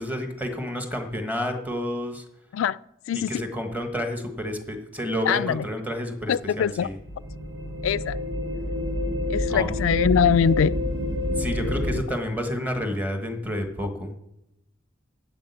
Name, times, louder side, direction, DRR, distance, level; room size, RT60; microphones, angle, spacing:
voice 1, 0.0-2.2 3.3-6.9 9.5-9.7 11.4-14.1, equal, 10° right, 5 dB, 1.3 m, -30 dB
voice 2, 3.1-3.4 5.2-5.6 6.3-6.9 7.8-8.2 9.3-10.7, left 8 dB, 85° left, 19 dB, 0.3 m, -23 dB
sound 1, 6.9-12.0, left 1 dB, 70° right, 1.2 m, -28 dB
8.5 x 7.6 x 8.2 m, 0.86 s
head